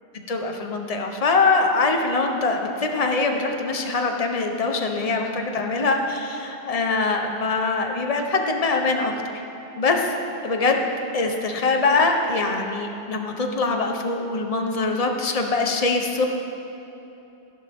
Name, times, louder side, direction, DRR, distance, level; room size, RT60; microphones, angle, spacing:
voice 1, 0.1-9.4 9.8-10.0 10.4-10.8 11.1-16.3, left 3 dB, 35° left, 3 dB, 1.2 m, -23 dB
21.0 x 16.0 x 3.7 m, 2.9 s
omnidirectional pair, 1.2 m